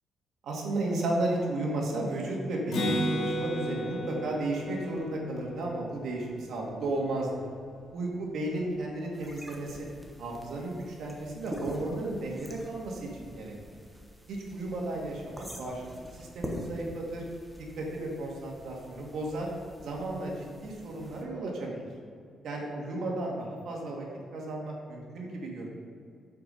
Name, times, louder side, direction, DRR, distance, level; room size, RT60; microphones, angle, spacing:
voice 1, 0.4-7.3 7.9-9.9 10.2-13.5 14.3-15.8 16.1-17.2 17.8-19.5 19.8-21.8 22.4-24.1 24.3-25.7, right 2 dB, 70° right, -1 dB, 2.1 m, -34 dB
Acoustic guitar, 2.7-6.4, equal, 80° left, 2.0 m, -33 dB
sound 1, 9.1-21.2, equal, ahead, 1.1 m, -45 dB
8.3 x 5.9 x 5.6 m, 2.3 s
cardioid pair, 140°, 0 cm